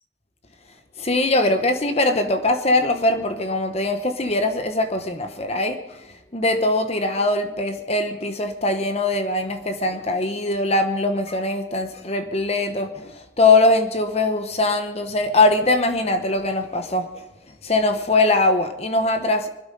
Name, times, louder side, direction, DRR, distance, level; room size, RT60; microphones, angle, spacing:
voice 1, 1.0-6.0 6.3-17.2 17.6-19.5, left 2 dB, 30° left, 8 dB, 0.9 m, -21 dB
21.5 x 12.0 x 5.4 m, 1.0 s
head